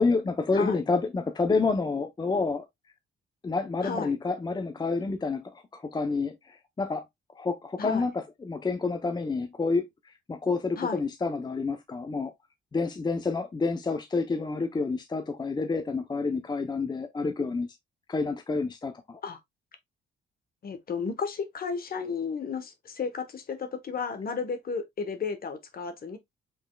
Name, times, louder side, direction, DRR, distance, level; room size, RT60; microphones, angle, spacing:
voice 1, 0.0-2.7 3.4-7.0 7.4-12.3 12.7-17.8 18.1-19.2, left 4 dB, 20° left, 0.6 m, -29 dB
voice 2, 3.8-4.1 7.8-8.1 10.8-11.0 19.2-19.4 20.6-26.2, left 5 dB, 50° left, 1.1 m, -33 dB
5.5 x 3.5 x 2.2 m
cardioid pair, 90°, 20 cm